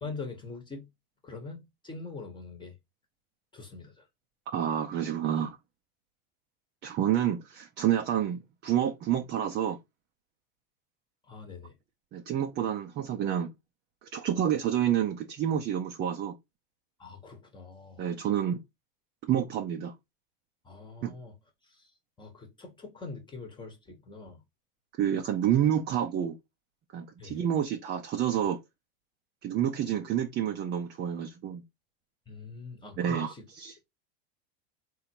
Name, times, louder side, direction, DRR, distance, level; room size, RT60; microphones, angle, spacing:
voice 1, 0.0-0.9 1.2-2.7 3.5-4.0 11.3-11.7 17.0-18.0 20.6-21.3 21.6-21.9 22.2-24.4 27.2-27.4 32.3-33.4, left 4 dB, 15° left, 1.1 m, -43 dB
voice 2, 4.5-5.6 6.8-9.8 12.1-13.5 14.1-16.3 18.0-18.6 19.3-19.9 21.0-21.1 25.0-26.4 26.9-28.6 29.4-31.6 33.0-33.8, right 10 dB, 35° right, 0.7 m, -28 dB
3.9 x 2.8 x 4.4 m
supercardioid pair, 120°, 29 cm